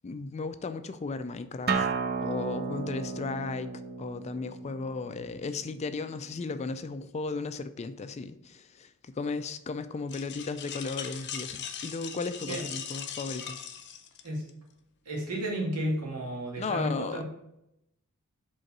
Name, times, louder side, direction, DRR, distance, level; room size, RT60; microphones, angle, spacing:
voice 1, 0.0-1.9 2.2-3.7 4.0-8.9 9.1-11.6 11.8-13.6 16.6-17.2, left 4 dB, 30° left, 11 dB, 0.3 m, -35 dB
Acoustic guitar, 1.7-6.9, right 5 dB, 45° right, 0.6 m, -34 dB
sound 1, 10.1-14.5, left 8 dB, 50° left, 0.7 m, -39 dB
voice 2, 15.1-17.2, right 1 dB, 85° right, -2 dB, 2.1 m, -32 dB
5.3 x 3.9 x 5.9 m, 0.84 s
head